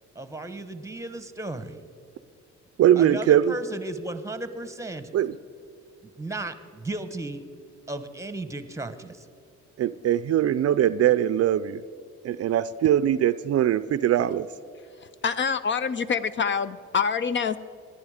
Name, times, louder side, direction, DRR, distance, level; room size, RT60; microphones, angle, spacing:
voice 1, 0.1-1.8 3.0-5.1 6.2-7.4 7.9-9.3, right 2 dB, 10° right, 11 dB, 1.0 m, -35 dB
voice 2, 2.8-3.5 5.1-5.3 9.8-11.8 12.2-14.5, right 11 dB, 55° right, 16 dB, 0.5 m, -21 dB
voice 3, 15.2-17.6, left 6 dB, 40° left, 14 dB, 0.5 m, -26 dB
18.0 x 11.0 x 5.0 m, 2.3 s
cardioid pair, 90°, 30 cm